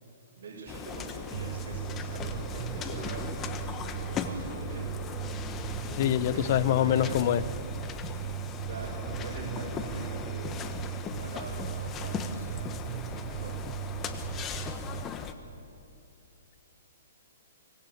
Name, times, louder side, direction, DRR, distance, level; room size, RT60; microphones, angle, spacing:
voice 1, 0.4-3.3 3.8-5.2 6.3-7.2 8.7-10.6 11.0-13.5, right 3 dB, 60° right, -5 dB, 6.5 m, -44 dB
sound 1, 0.7-15.3, left 6 dB, 20° left, 1.3 m, -38 dB
sound 2, 1.3-15.0, right 13 dB, 45° right, 0.5 m, -38 dB
voice 2, 5.9-7.4, left 11 dB, 45° left, 15 dB, 0.9 m, -25 dB
24.5 x 19.0 x 8.0 m, 2.6 s
hypercardioid pair, 150°, 0 cm